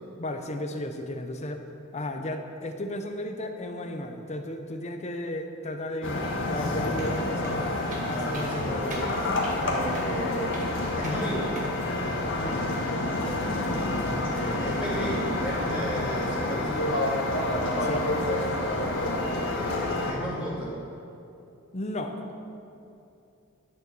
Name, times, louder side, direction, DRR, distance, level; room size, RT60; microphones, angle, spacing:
voice 1, 0.2-1.6 1.9-8.8 12.4-12.6 17.8-18.0 21.7-22.2, left 1 dB, 35° left, 5 dB, 0.8 m, -34 dB
sound 1, 6.0-20.1, left 2 dB, 65° left, 1.6 m, -28 dB
sound 2, 7.0-7.1 7.4-7.6 7.9-8.1 8.3-8.5 8.9-9.1 9.4-9.6 9.9-10.1 10.5-10.7 11.0-11.2 11.6-11.7, right 2 dB, 40° right, 1.7 m, -42 dB
voice 2, 8.1-9.1 9.6-10.6 10.9-11.5 14.3-17.1 19.4-20.7, equal, 5° right, -10 dB, 2.5 m, -34 dB
11.0 x 6.9 x 6.3 m, 2.7 s
head